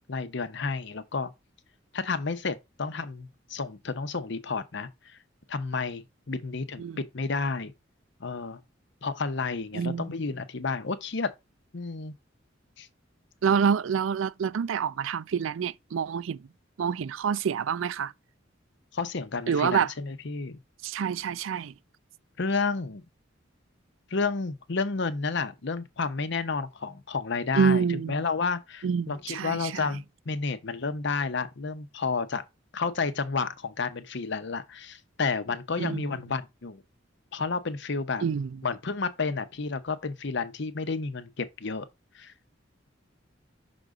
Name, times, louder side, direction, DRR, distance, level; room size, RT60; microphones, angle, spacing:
voice 1, 0.1-1.3 1.9-5.2 5.5-7.7 8.2-8.6 9.0-11.3 11.7-12.1 12.8-12.9 18.9-20.6 22.4-23.0 24.1-32.4 32.7-36.8 37.3-38.2 38.6-41.9 42.1-42.3, left 4 dB, 65° left, 0.8 m, -31 dB
voice 2, 9.7-10.1 13.4-16.4 16.8-18.1 19.5-19.9 20.8-21.7 27.5-28.2 28.8-29.9 35.8-36.1 38.2-38.5, right 6 dB, 90° right, 0.4 m, -27 dB
6.1 x 3.9 x 4.8 m
head